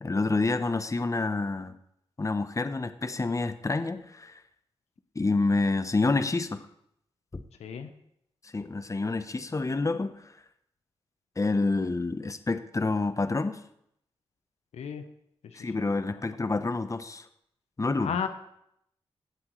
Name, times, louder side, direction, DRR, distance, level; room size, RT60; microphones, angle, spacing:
voice 1, 0.0-1.7 2.2-4.4 5.1-6.7 7.3-7.4 8.5-10.3 11.4-13.6 15.5-17.3 17.8-18.2, left 3 dB, 30° left, 10 dB, 0.8 m, -28 dB
voice 2, 7.6-7.9 14.7-15.0 15.4-16.2 18.0-18.3, left 7 dB, 90° left, 8 dB, 0.8 m, -35 dB
17.0 x 7.8 x 3.1 m, 0.75 s
cardioid pair, 45°, 11 cm